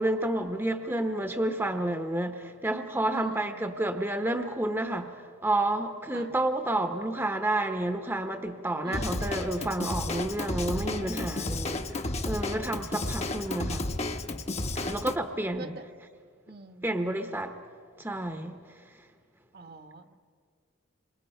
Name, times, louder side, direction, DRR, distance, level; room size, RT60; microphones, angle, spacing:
voice 1, 0.0-13.9 14.8-15.8 16.8-17.6 18.0-19.1, right 1 dB, 10° right, 6 dB, 1.0 m, -30 dB
voice 2, 3.1-3.6 6.1-6.3 8.8-9.3 11.5-11.6 12.4-12.9 14.7-15.0 15.6-16.0 16.5-16.9 19.5-20.1, right 2 dB, 50° right, 7 dB, 1.3 m, -45 dB
Drum kit / Drum, 8.9-15.2, left 2 dB, 35° left, 1.0 m, -32 dB
28.0 x 25.5 x 5.6 m, 2.1 s
head